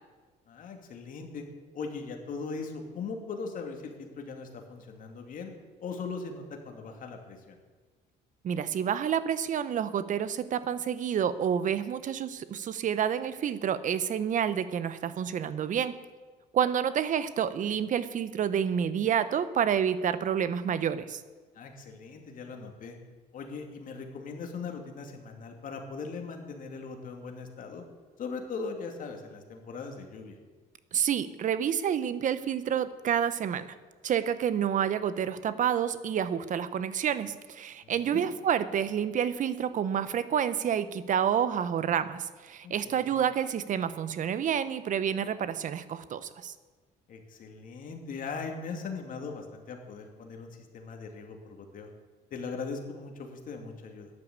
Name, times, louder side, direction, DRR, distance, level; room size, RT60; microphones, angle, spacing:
voice 1, 0.5-1.4 1.7-5.5 5.8-7.6 21.5-23.0 23.3-27.8 28.2-30.3 37.8-38.3 42.6-43.1 47.1-51.9 52.3-54.1, left 4 dB, 50° left, 3 dB, 2.6 m, -39 dB
voice 2, 8.4-15.9 16.5-21.2 30.9-33.7 34.0-46.5, right 8 dB, 50° right, 14 dB, 0.9 m, -29 dB
12.5 x 10.5 x 8.2 m, 1.4 s
cardioid pair, 110°, 17 cm